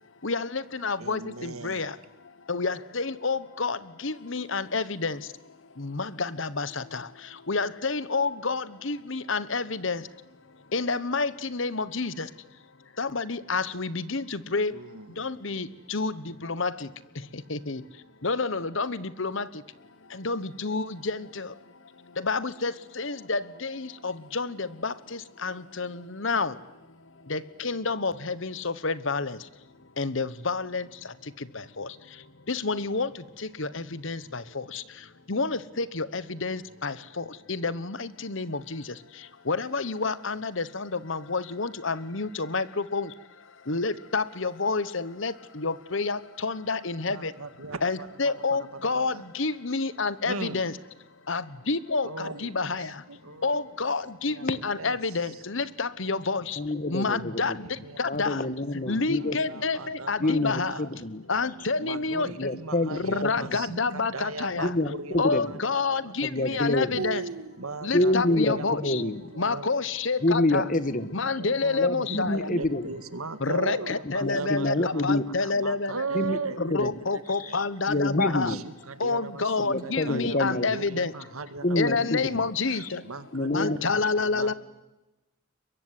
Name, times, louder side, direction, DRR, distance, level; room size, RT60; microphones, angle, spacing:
voice 1, 0.2-1.9 2.5-5.2 5.8-7.0 7.5-10.0 10.7-12.3 13.0-14.7 15.2-16.1 16.4-16.7 17.5-17.8 18.2-19.5 20.2-21.5 22.2-26.5 27.3-29.4 30.0-30.8 31.8-31.9 32.5-33.1 33.6-34.8 35.3-38.8 39.5-43.1 43.7-47.3 47.8-50.7 51.3-52.9 53.4-56.6 56.9-57.5 58.0-58.4 58.9-60.7 61.3-62.5 63.0-64.7 65.2-67.2 67.8-69.0 69.4-70.6 71.1-72.5 73.4-76.1 76.6-78.5 79.0-81.1 81.8-83.0 83.5-84.5, left 4 dB, 60° left, 16 dB, 1.2 m, -29 dB
voice 2, 1.0-1.8 14.7-15.3 47.1-49.2 50.2-50.6 52.0-52.5 52.8-53.9 54.3-54.5 54.8-55.4 56.9-60.8 61.8-69.7 70.5-70.6 71.4-75.0 75.4-77.6 78.3-82.4 82.7-84.5, right 4 dB, 85° right, 11 dB, 2.0 m, -39 dB
voice 3, 56.6-57.6 58.0-59.4 60.2-61.2 62.3-63.7 64.6-65.6 66.2-67.0 67.9-69.2 70.2-71.2 71.8-72.9 74.0-75.2 76.1-76.9 77.3-78.6 79.7-80.7 81.6-82.5 82.8-82.9 83.3-83.8, left 2 dB, 40° left, 13 dB, 1.5 m, -27 dB
23.0 x 23.0 x 9.9 m, 1.0 s
head